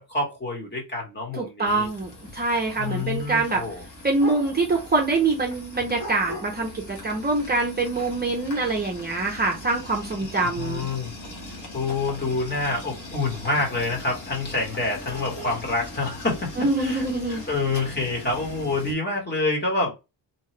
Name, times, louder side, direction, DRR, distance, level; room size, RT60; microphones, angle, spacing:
voice 1, 0.0-1.9 2.8-3.8 10.4-11.1 11.5-19.9, left 3 dB, 25° left, 1.2 m, -27 dB
voice 2, 1.4-3.6 4.0-10.9 16.6-17.4, right 3 dB, 25° right, 0.6 m, -25 dB
sound 1, 1.6-18.9, left 1 dB, 45° left, 1.1 m, -40 dB
2.8 x 2.3 x 3.1 m
wide cardioid pair, 145°, 43 cm